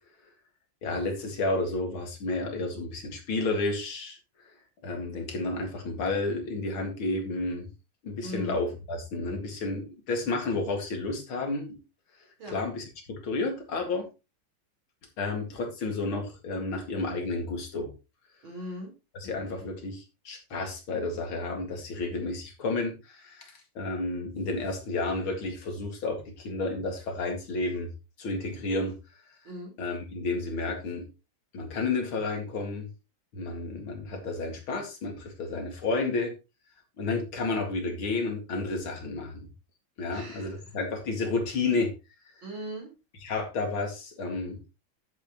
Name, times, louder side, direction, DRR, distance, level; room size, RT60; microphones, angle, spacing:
voice 1, 0.8-4.2 4.4-4.5 4.8-7.7 8.0-11.8 12.4-14.1 15.2-17.9 19.2-27.9 28.2-29.0 29.8-31.1 31.5-32.9 33.3-36.3 37.0-39.5 40.0-41.9 43.2-44.6, left 3 dB, 80° left, 3.0 m, -31 dB
voice 2, 8.2-8.6 12.4-12.6 18.4-18.9 29.4-29.7 40.1-40.7 42.4-42.9, equal, 70° right, 4.6 m, -39 dB
10.0 x 8.7 x 3.0 m
omnidirectional pair, 2.2 m